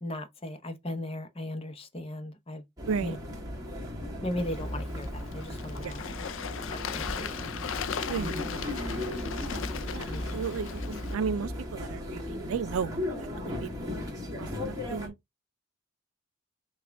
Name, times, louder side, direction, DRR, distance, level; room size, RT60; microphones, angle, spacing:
voice 1, 0.0-2.6 3.0-3.2 4.2-6.0 6.7-7.5 10.1-10.3, left 1 dB, 25° left, 0.8 m, -37 dB
sound 1, 2.8-15.1, left 1 dB, 15° right, 1.5 m, -36 dB
voice 2, 2.9-3.2 5.8-6.0 6.4-6.5 8.1-8.4 9.9-14.0 14.4-15.1, right 6 dB, 80° right, 0.4 m, -34 dB
Bird / Water, 4.4-11.1, left 7 dB, 70° left, 0.4 m, -38 dB
6.0 x 2.3 x 3.4 m
head